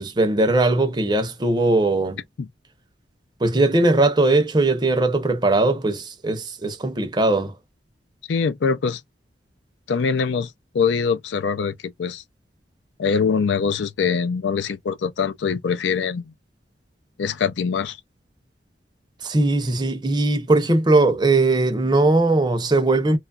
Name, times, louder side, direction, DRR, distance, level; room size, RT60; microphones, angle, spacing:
voice 1, 0.0-2.2 3.4-7.6 19.2-23.2, right 2 dB, 25° right, 0.6 m, -19 dB
voice 2, 8.3-9.0 9.9-12.2 13.0-16.3 17.2-18.0, left 6 dB, 80° left, 0.4 m, -23 dB
2.9 x 2.3 x 2.3 m
head